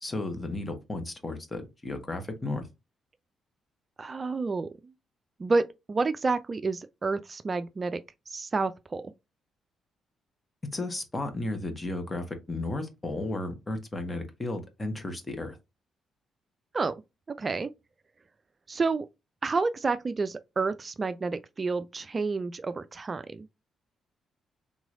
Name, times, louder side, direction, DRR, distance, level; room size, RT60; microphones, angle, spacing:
voice 1, 0.0-2.7 10.7-15.6, left 2 dB, 30° left, 1.2 m, -34 dB
voice 2, 4.0-4.7 5.4-8.0 8.3-9.0 16.7-16.9 17.4-17.7 18.7-19.1 19.4-23.5, right 4 dB, 40° right, 0.3 m, -29 dB
3.8 x 3.0 x 2.5 m
hypercardioid pair, 45°, 0 cm